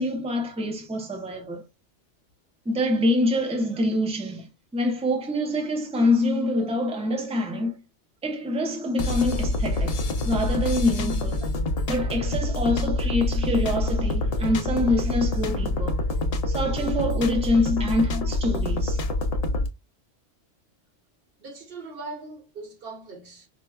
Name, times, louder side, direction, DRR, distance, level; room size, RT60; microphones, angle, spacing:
voice 1, 0.0-1.6 2.7-7.8 8.2-11.4 11.9-16.0 16.5-19.0, left 1 dB, 10° right, 0.5 m, -25 dB
sound 1, 9.0-19.7, left 2 dB, 55° left, 0.4 m, -26 dB
voice 2, 21.4-23.5, right 3 dB, 55° right, 1.1 m, -40 dB
4.5 x 2.1 x 2.3 m
omnidirectional pair, 1.2 m